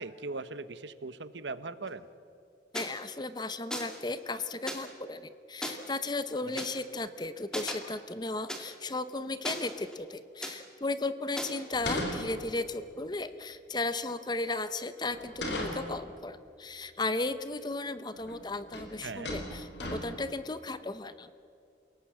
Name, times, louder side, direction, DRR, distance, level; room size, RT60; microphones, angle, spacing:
voice 1, 0.0-2.1 6.4-6.6 19.0-19.3, right 3 dB, 80° right, 14 dB, 1.0 m, -40 dB
voice 2, 2.7-21.3, left 2 dB, 25° left, 12 dB, 0.8 m, -35 dB
sound 1, 2.7-2.9 3.7-4.0 4.7-4.8 5.6-5.7 6.6-6.7 7.5-7.7 8.5-8.6 9.5-10.0 10.4-10.5 11.4-11.6, equal, 5° left, 2.3 m, -36 dB
sound 2, 11.7-12.7 15.1-16.1 17.7-17.8 18.2-18.4 18.7-19.0 19.2-20.3, left 1 dB, 75° left, 4.2 m, -36 dB
28.5 x 17.5 x 7.7 m, 2.5 s
head